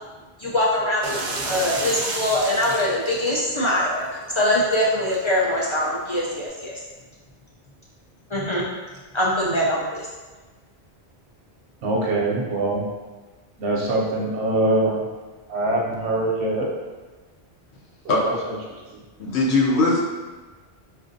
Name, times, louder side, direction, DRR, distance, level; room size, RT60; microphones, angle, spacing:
voice 1, 0.4-6.7 8.3-8.7 9.1-10.0, left 1 dB, 45° left, -6 dB, 0.4 m, -23 dB
sound 1, 1.0-6.5, right 2 dB, 55° right, 0.5 m, -33 dB
voice 2, 11.8-12.8 13.6-15.0 15.5-16.7 18.2-18.3, right 2 dB, 80° right, -3 dB, 0.9 m, -23 dB
voice 3, 19.2-20.0, left 2 dB, 80° left, -3 dB, 1.0 m, -19 dB
4.4 x 2.5 x 2.6 m, 1.3 s
omnidirectional pair, 1.1 m